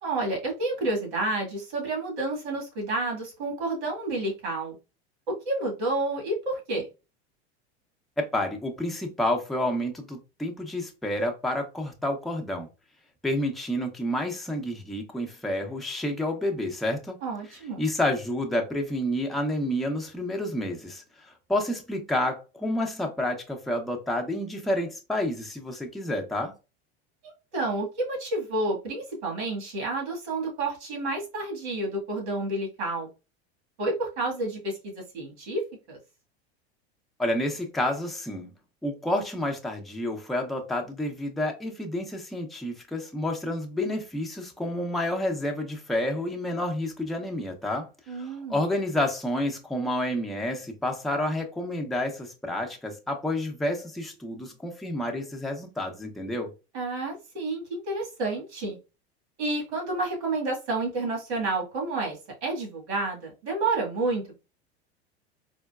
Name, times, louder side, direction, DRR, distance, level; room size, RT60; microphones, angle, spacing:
voice 1, 0.0-4.8 5.3-6.8 17.2-17.8 27.5-33.1 33.8-35.6 35.9-36.0 48.1-48.6 56.7-58.8 59.4-64.4, right 2 dB, 85° right, 1.6 m, -30 dB
voice 2, 8.3-12.7 13.2-17.2 17.8-21.0 21.5-26.5 37.2-38.5 38.8-56.5, left 1 dB, ahead, 0.5 m, -29 dB
3.8 x 2.1 x 2.2 m
hypercardioid pair, 100°, 33 cm